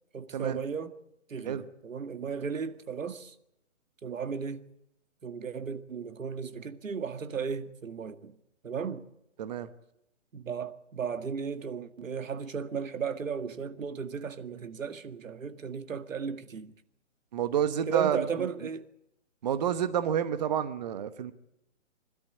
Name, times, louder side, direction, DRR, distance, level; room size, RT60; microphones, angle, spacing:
voice 1, 0.1-1.0 1.3-3.4 4.0-4.7 5.2-8.4 8.6-9.1 10.3-16.7 17.9-18.8, right 6 dB, 80° right, 1.9 m, -35 dB
voice 2, 9.4-9.7 17.3-18.2 19.4-21.3, right 9 dB, 35° right, 1.1 m, -29 dB
24.5 x 13.0 x 9.8 m
hypercardioid pair, 160°, 39 cm